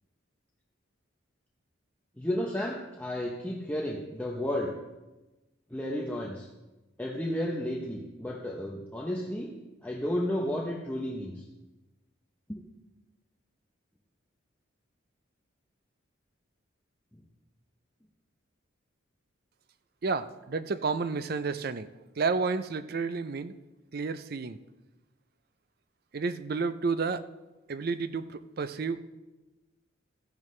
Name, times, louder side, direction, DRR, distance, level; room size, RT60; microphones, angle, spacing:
voice 1, 2.2-4.7 5.7-6.5 7.0-9.5 9.8-11.4 12.5-12.6, left 1 dB, 10° left, -2 dB, 0.8 m, -32 dB
voice 2, 20.0-21.9 22.2-23.5 23.9-24.6 26.1-27.2 27.7-29.0, right 4 dB, 45° right, 13 dB, 0.5 m, -31 dB
14.5 x 10.5 x 3.2 m, 1.1 s
head